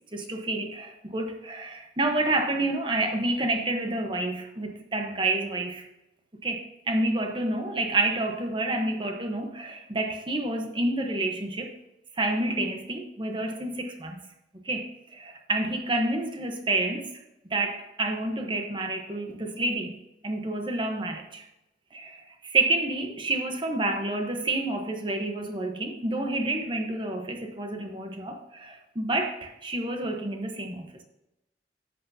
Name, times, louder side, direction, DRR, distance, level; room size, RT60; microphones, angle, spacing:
voice 1, 0.1-5.8 6.4-11.7 12.2-14.2 14.6-17.0 17.5-20.0 20.2-21.4 21.9-22.2 22.4-31.0, right 2 dB, 25° right, 3 dB, 1.0 m, -29 dB
11.0 x 8.2 x 2.8 m, 0.91 s
head